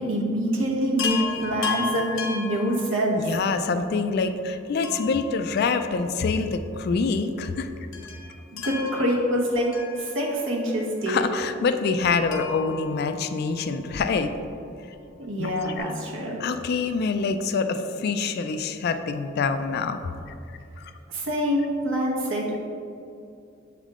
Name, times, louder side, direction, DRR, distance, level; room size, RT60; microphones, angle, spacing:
voice 1, 0.0-3.3 8.5-9.7 10.0-11.2 15.2-16.4 21.1-22.6, equal, 70° right, -3 dB, 1.1 m, -25 dB
Chime, 1.0-3.4 4.8-6.4 6.6-6.7 7.9-10.6 12.3-13.9 15.5-15.6 15.8-15.9, left 6 dB, 75° left, 0.7 m, -34 dB
voice 2, 3.2-7.7 11.1-14.3 15.4-15.9 16.4-20.0, left 4 dB, 50° left, 9 dB, 0.3 m, -26 dB
7.3 x 3.5 x 3.6 m, 2.7 s
head